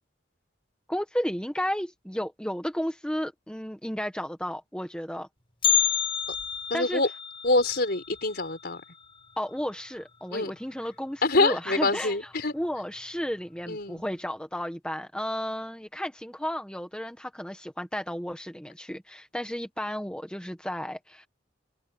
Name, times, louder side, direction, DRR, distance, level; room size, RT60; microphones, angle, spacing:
voice 1, 0.9-5.3 6.7-7.0 9.4-21.3, equal, 5° left, 1.4 m, -33 dB
Bell, 5.6-9.7 10.0-10.1 10.6-10.7 11.5-11.6 12.3-12.6 13.0-13.1, left 8 dB, 25° left, 6.8 m, -29 dB
voice 2, 6.7-7.1 7.4-8.8 10.3-10.5 11.2-12.5 13.7-14.0, left 2 dB, 55° left, 4.8 m, -25 dB
open air
head